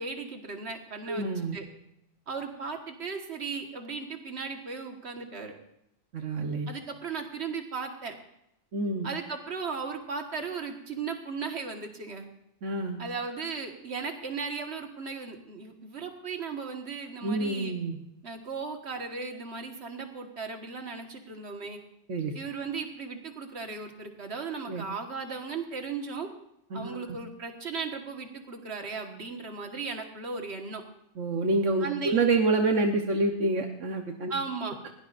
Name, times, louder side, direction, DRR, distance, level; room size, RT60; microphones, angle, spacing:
voice 1, 0.0-1.3 1.5-1.7 2.3-5.5 6.7-8.1 9.0-12.3 13.0-17.8 18.2-21.8 22.3-26.3 26.7-30.8 31.8-32.2 34.3-34.8, right 5 dB, 60° right, 4 dB, 1.8 m, -36 dB
voice 2, 1.1-1.6 6.1-6.7 8.7-9.1 12.6-13.0 17.2-18.0 22.1-22.3 24.7-24.8 26.7-27.2 31.2-34.3, right 3 dB, 80° right, 3 dB, 1.5 m, -27 dB
20.5 x 17.0 x 2.6 m, 0.80 s
omnidirectional pair, 1.2 m